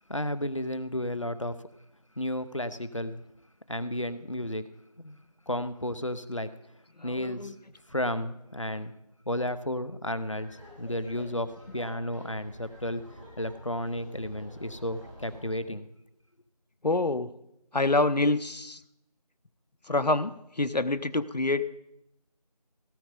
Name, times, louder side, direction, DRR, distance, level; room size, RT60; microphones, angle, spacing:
voice 1, 0.1-1.6 2.2-3.2 3.7-4.6 5.0-5.2 5.5-6.5 7.0-7.5 7.9-8.9 9.3-13.0 13.4-15.9, left 1 dB, 50° left, 13 dB, 0.7 m, -32 dB
voice 2, 7.0-7.5 16.8-17.3 17.7-18.8 19.9-21.7, left 2 dB, 85° left, 12 dB, 0.7 m, -27 dB
Laughter, 10.4-15.5, equal, 50° right, 5.4 m, -50 dB
16.5 x 7.7 x 5.2 m, 0.83 s
figure-of-eight pair, 180°, 21 cm